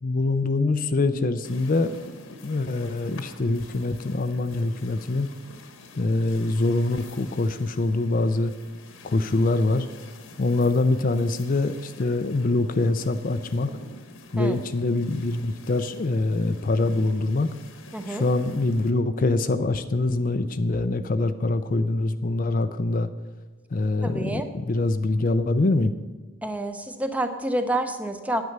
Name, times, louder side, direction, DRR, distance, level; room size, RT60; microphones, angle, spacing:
voice 1, 0.0-1.9 2.4-5.3 6.0-8.5 9.0-9.9 10.4-13.7 14.3-17.5 18.1-23.1 23.7-25.9, left 2 dB, 40° left, 10 dB, 0.5 m, -24 dB
sound 1, 1.4-18.9, left 3 dB, 65° left, 1.3 m, -47 dB
voice 2, 17.9-18.2 24.0-24.5 26.4-28.4, right 1 dB, 5° right, 8 dB, 0.7 m, -28 dB
9.5 x 9.2 x 6.7 m, 1.4 s
head